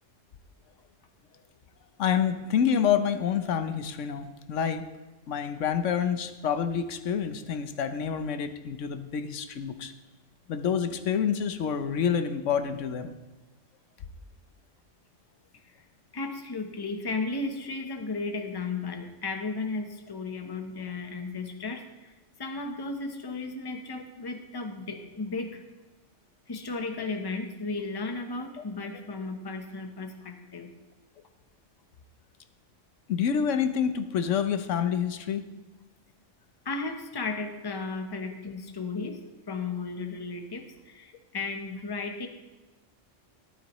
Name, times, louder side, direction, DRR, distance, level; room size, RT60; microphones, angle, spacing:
voice 1, 2.0-4.9 5.3-9.9 10.5-13.1 28.6-28.7 33.1-35.4, left 7 dB, 80° left, 9 dB, 1.1 m, -28 dB
voice 2, 16.1-22.1 22.4-25.6 26.5-30.7 36.6-42.3, left 3 dB, 20° left, 5 dB, 0.8 m, -34 dB
13.5 x 11.5 x 3.1 m, 1.2 s
omnidirectional pair, 1.3 m